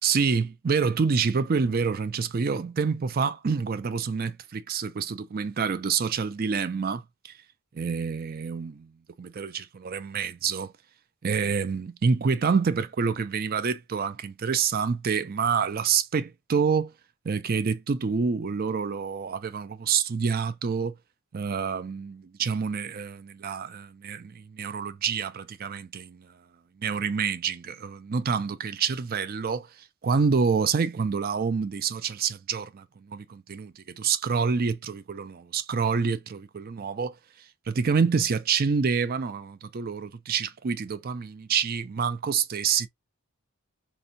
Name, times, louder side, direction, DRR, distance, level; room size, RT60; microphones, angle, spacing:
voice 1, 0.0-7.3 7.7-8.9 9.2-10.7 11.2-16.9 17.2-20.9 21.3-26.3 26.8-37.1 37.7-42.9, right 5 dB, 40° right, 0.4 m, -27 dB
4.3 x 2.7 x 2.6 m
head